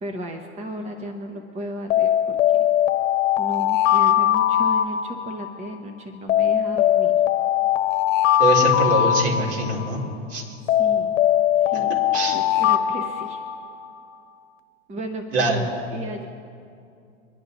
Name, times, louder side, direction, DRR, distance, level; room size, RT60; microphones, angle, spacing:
voice 1, 0.0-2.7 3.4-7.1 10.8-11.2 11.6-11.9 12.3-13.4 14.9-16.3, equal, 20° right, 5 dB, 1.0 m, -34 dB
Alarm, 1.9-5.6 6.3-10.0 10.7-13.9, left 11 dB, 70° left, 0.9 m, -20 dB
voice 2, 8.4-10.0 10.3-10.5 11.9-12.4 15.3-15.6, right 2 dB, 60° right, -2 dB, 4.1 m, -23 dB
25.0 x 10.5 x 4.0 m, 2.4 s
hypercardioid pair, 125°, 38 cm